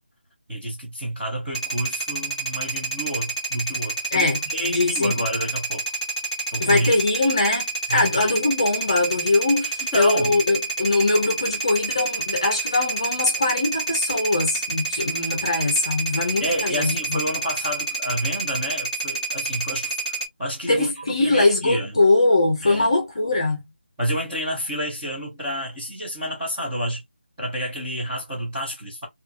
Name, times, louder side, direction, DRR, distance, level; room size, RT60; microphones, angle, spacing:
voice 1, 0.5-5.8 6.5-6.9 7.9-8.3 9.9-10.4 16.4-19.9 20.4-22.0 22.6-22.9 24.0-27.0 27.4-29.1, equal, 5° right, 0.6 m, -29 dB
sound 1, 1.5-20.3, right 3 dB, 40° right, 1.0 m, -28 dB
voice 2, 4.6-5.1 6.6-17.2 20.7-23.6, left 2 dB, 30° left, 0.7 m, -22 dB
2.5 x 2.4 x 2.5 m
figure-of-eight pair, 180°, 6 cm